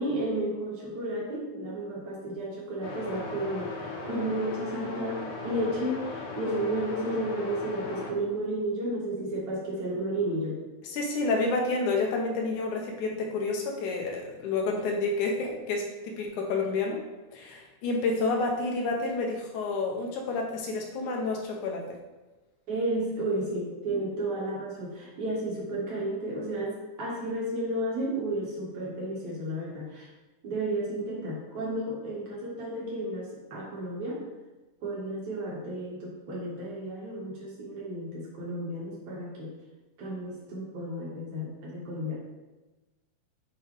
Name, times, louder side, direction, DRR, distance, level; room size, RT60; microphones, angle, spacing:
voice 1, 0.0-10.6 22.7-30.1 30.4-34.2 34.8-39.5 40.0-42.4, right 1 dB, 70° right, -5 dB, 3.2 m, -32 dB
sound 1, 2.8-8.1, left 3 dB, 65° left, 2.2 m, -38 dB
voice 2, 10.8-17.0 17.3-21.9, left 3 dB, 85° left, 1 dB, 2.5 m, -29 dB
8.2 x 4.7 x 3.6 m, 1.1 s
omnidirectional pair, 3.4 m